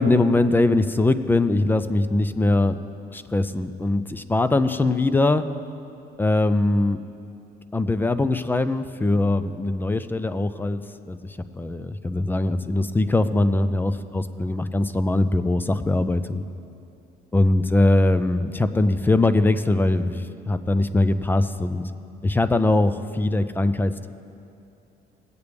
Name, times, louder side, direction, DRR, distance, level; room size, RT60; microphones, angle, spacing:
voice 1, 0.0-2.8 3.1-5.4 6.2-7.0 7.7-10.8 11.1-11.2 11.5-16.4 17.3-21.9 22.2-24.1, left 2 dB, 10° left, 12 dB, 0.4 m, -21 dB
19.5 x 8.2 x 3.4 m, 2.6 s
cardioid pair, 110°, 17 cm